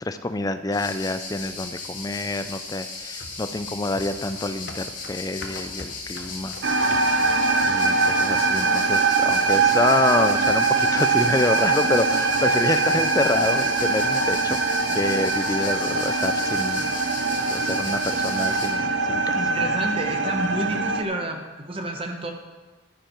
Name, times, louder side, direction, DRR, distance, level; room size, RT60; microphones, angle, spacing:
voice 1, 0.0-6.6 7.6-14.6 14.9-16.8 17.5-19.4, left 2 dB, 20° left, 10 dB, 0.4 m, -27 dB
sound 1, 0.7-18.7, left 3 dB, 40° left, 2.3 m, -36 dB
sound 2, 3.2-7.7 8.0-8.1, left 2 dB, 55° left, 1.0 m, -42 dB
sound 3, 6.6-21.0, right 4 dB, 60° right, 0.6 m, -22 dB
voice 2, 19.3-22.3, right 1 dB, 30° right, 4 dB, 1.0 m, -29 dB
11.5 x 9.5 x 4.5 m, 1.2 s
head